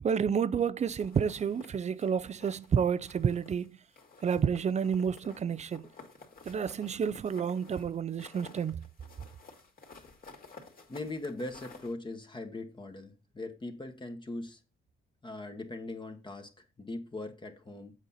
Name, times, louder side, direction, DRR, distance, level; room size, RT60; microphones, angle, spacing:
voice 1, 0.0-3.8 4.2-5.8 6.5-8.8, right 7 dB, 35° right, 0.5 m, -30 dB
sound 1, 1.0-2.7 3.1-3.7 3.9-11.9, left 4 dB, 45° left, 2.4 m, -53 dB
voice 2, 10.8-14.6 15.2-17.9, left 2 dB, 25° left, 1.3 m, -40 dB
8.0 x 5.3 x 4.2 m
cardioid pair, 90°, 20 cm